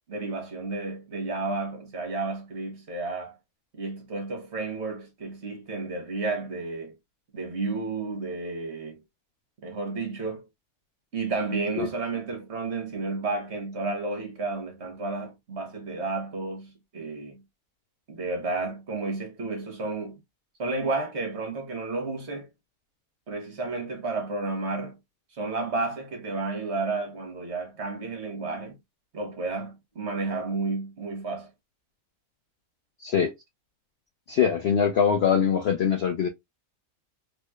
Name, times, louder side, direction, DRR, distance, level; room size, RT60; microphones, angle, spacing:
voice 1, 0.1-3.4 3.7-6.9 7.3-9.0 9.6-10.4 11.1-17.4 18.1-20.1 20.6-22.5 23.3-25.0 25.4-28.7 29.1-31.5, right 3 dB, 50° right, 1.4 m, -32 dB
voice 2, 33.0-33.3 34.3-36.3, left 7 dB, 65° left, 0.6 m, -23 dB
3.5 x 3.1 x 2.2 m
omnidirectional pair, 1.6 m